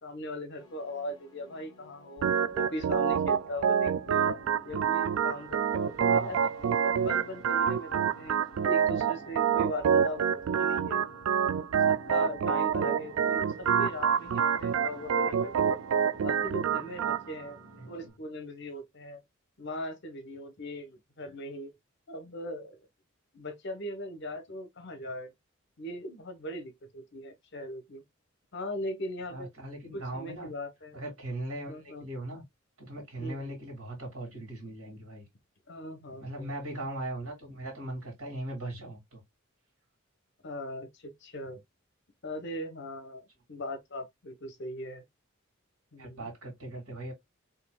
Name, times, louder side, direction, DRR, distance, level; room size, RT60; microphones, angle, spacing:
voice 1, 0.0-8.4 8.6-11.0 11.9-15.8 16.2-17.6 17.9-19.2 19.6-21.7 22.1-22.9 23.3-25.3 25.8-28.0 28.5-29.5 29.9-31.0 31.7-32.1 33.2-33.6 35.7-36.5 40.4-41.6 42.2-45.0 45.9-46.3, left 1 dB, 55° left, 0.9 m, -39 dB
sound 1, 0.5-18.1, left 1 dB, 20° left, 1.2 m, -55 dB
Organ, 2.2-17.2, right 7 dB, 70° right, 0.3 m, -27 dB
voice 2, 6.0-6.4 17.8-18.1 29.3-30.5 30.9-32.4 32.8-35.2 36.2-39.2 46.0-47.1, right 1 dB, 90° right, 2.4 m, -39 dB
4.2 x 3.3 x 2.2 m
head